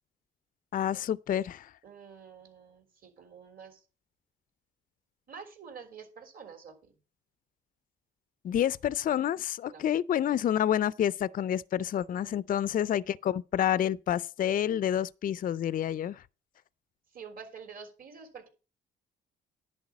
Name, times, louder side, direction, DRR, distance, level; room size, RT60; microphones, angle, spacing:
voice 1, 0.7-1.7 8.4-16.2, left 10 dB, 45° left, 0.4 m, -28 dB
voice 2, 1.8-3.8 5.3-6.9 9.7-9.9 12.2-12.4 17.1-18.5, right 6 dB, 45° right, 3.4 m, -48 dB
10.5 x 4.7 x 7.1 m
cardioid pair, 90°, 20 cm